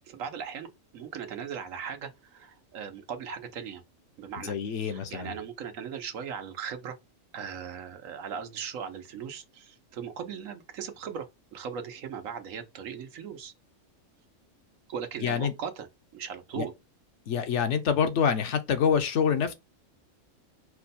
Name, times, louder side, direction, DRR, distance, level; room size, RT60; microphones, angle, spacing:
voice 1, 0.1-3.8 4.2-7.0 7.3-11.3 11.5-13.5 14.9-15.9 16.1-16.7, right 7 dB, 85° right, 1.2 m, -38 dB
voice 2, 4.4-5.3 15.2-15.5 16.5-16.6 17.3-19.5, left 7 dB, 65° left, 0.9 m, -26 dB
4.5 x 2.2 x 4.1 m
omnidirectional pair, 1.3 m